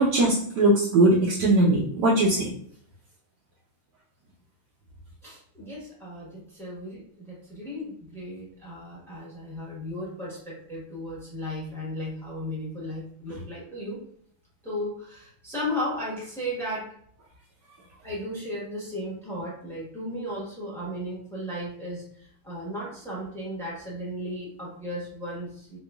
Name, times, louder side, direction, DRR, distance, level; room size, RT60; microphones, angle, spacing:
voice 1, 0.0-2.5, right 2 dB, 70° right, -5 dB, 1.0 m, -20 dB
voice 2, 5.2-14.0 14.6-16.9 18.0-25.8, equal, 5° left, -6 dB, 0.5 m, -35 dB
4.7 x 2.2 x 2.3 m, 0.63 s
omnidirectional pair, 2.4 m